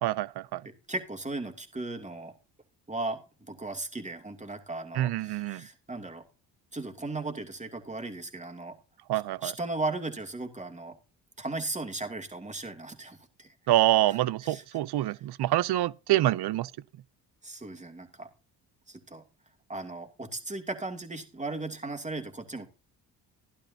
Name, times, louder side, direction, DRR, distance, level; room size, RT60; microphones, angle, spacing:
voice 1, 0.0-0.6 4.9-5.7 9.1-9.5 13.7-16.7, right 14 dB, 60° right, 0.6 m, -26 dB
voice 2, 0.6-2.3 2.9-6.2 6.7-8.8 9.4-11.0 11.4-13.5 14.1-14.2 14.4-14.6 17.4-18.3 18.9-19.2 19.7-22.7, right 2 dB, 15° right, 2.7 m, -36 dB
13.5 x 11.5 x 2.8 m
supercardioid pair, 70°, 44 cm